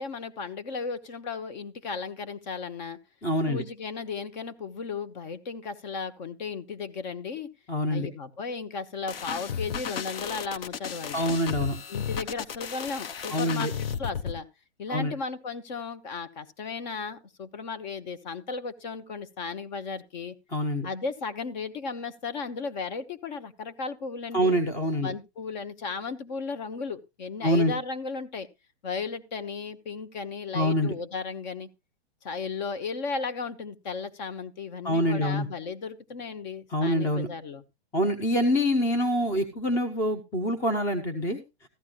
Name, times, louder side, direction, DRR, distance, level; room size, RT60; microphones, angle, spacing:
voice 1, 0.0-3.0 3.5-7.5 7.9-11.2 11.9-14.5 14.8-20.4 20.8-24.5 25.0-28.5 28.8-31.7 32.2-37.6, left 5 dB, 45° left, 11 dB, 1.2 m, -35 dB
voice 2, 3.2-3.6 7.7-8.1 11.1-11.8 13.3-13.7 14.9-15.1 20.5-20.9 24.3-25.1 27.4-27.7 30.5-30.9 34.8-35.5 36.7-37.3 37.9-41.4, equal, 10° left, 7 dB, 0.6 m, -25 dB
sound 1, 9.1-14.4, left 7 dB, 60° left, 1.0 m, -34 dB
14.5 x 11.5 x 2.5 m, 0.25 s
hypercardioid pair, 160°, 33 cm